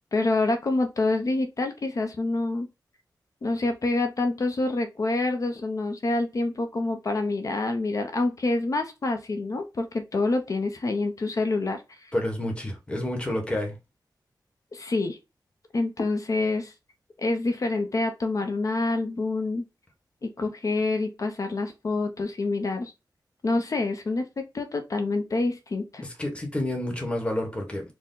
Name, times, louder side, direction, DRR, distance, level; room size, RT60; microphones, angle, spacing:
voice 1, 0.1-2.7 3.4-12.1 14.7-15.2 15.7-16.7 17.2-19.7 20.2-22.9 23.4-26.0, left 2 dB, 45° left, 0.7 m, -27 dB
voice 2, 12.1-13.8 26.0-27.8, left 1 dB, 15° left, 1.1 m, -29 dB
4.4 x 2.2 x 3.7 m
wide cardioid pair, 145°, 8 cm